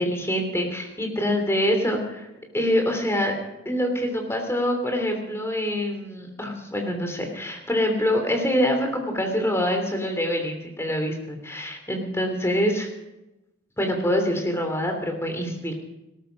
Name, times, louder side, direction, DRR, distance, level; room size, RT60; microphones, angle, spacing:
voice 1, 0.0-2.3 2.5-3.4 3.6-12.9 13.8-15.7, equal, 15° left, 3 dB, 3.0 m, -25 dB
17.5 x 13.5 x 5.2 m, 0.96 s
head